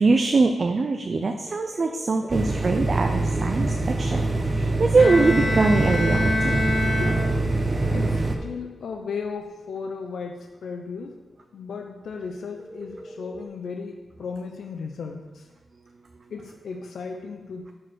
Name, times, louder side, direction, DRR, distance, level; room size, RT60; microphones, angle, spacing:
voice 1, 0.0-6.5, right 3 dB, 45° right, 5 dB, 0.5 m, -22 dB
sound 1, 1.4-2.6 6.6-8.6 12.6-13.5, equal, 15° left, 1.4 m, -42 dB
sound 2, 2.3-8.4, right 2 dB, 25° right, 0.9 m, -24 dB
Bowed string instrument, 5.0-7.7, left 2 dB, 65° left, 1.8 m, -26 dB
voice 2, 6.2-7.6 7.9-11.2 11.5-15.5 16.3-17.7, left 5 dB, 80° left, 4 dB, 0.6 m, -36 dB
6.3 x 4.6 x 6.2 m, 1.3 s
cardioid pair, 75°, 0 cm